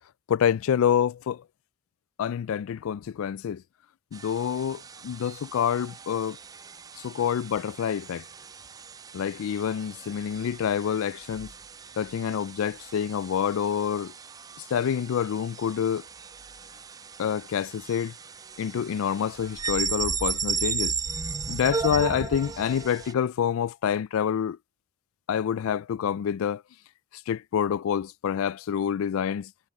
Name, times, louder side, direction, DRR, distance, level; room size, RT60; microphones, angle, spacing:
voice 1, 0.3-1.4 2.2-3.6 4.1-6.4 7.0-8.2 9.1-11.5 12.0-14.1 14.7-16.0 17.2-18.1 18.6-20.9 21.5-24.6 25.3-26.6 27.3-29.5, left 8 dB, 65° left, 0.3 m, -27 dB
sound 1, 4.1-23.1, right 5 dB, 15° right, 0.3 m, -36 dB
head